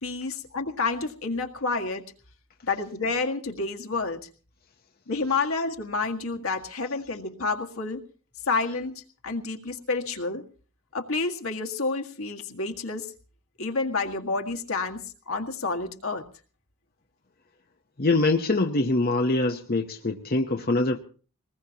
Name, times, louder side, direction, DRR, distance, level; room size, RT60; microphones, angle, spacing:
voice 1, 0.0-2.1 2.7-4.3 5.1-8.0 8.5-10.4 10.9-13.1 13.6-16.2, left 3 dB, 65° left, 4 dB, 1.8 m, -29 dB
voice 2, 18.0-21.0, left 2 dB, 45° left, 3 dB, 0.9 m, -24 dB
23.5 x 20.0 x 2.9 m, 0.40 s
head